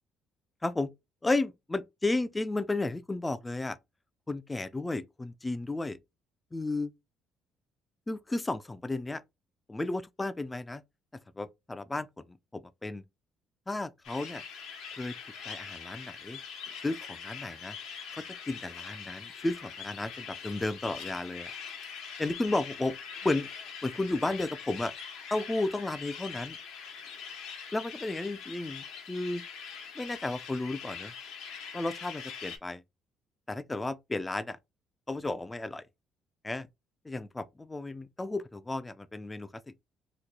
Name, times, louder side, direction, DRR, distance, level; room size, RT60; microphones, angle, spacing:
voice 1, 1.2-3.8 4.3-6.0 6.5-6.9 8.1-9.2 9.7-10.8 11.4-12.2 12.5-13.0 13.7-14.4 15.0-15.1 15.5-16.4 16.8-17.8 18.1-21.5 22.2-23.0 23.2-23.5 23.8-24.9 25.3-26.6 27.7-29.4 30.0-31.1 31.7-32.8 33.5-34.6 35.1-35.8 36.4-36.7 37.1-39.8, left 2 dB, 15° left, 0.3 m, -33 dB
sound 1, 14.0-32.6, left 6 dB, 90° left, 0.9 m, -43 dB
2.9 x 2.3 x 3.7 m
cardioid pair, 110°, 0 cm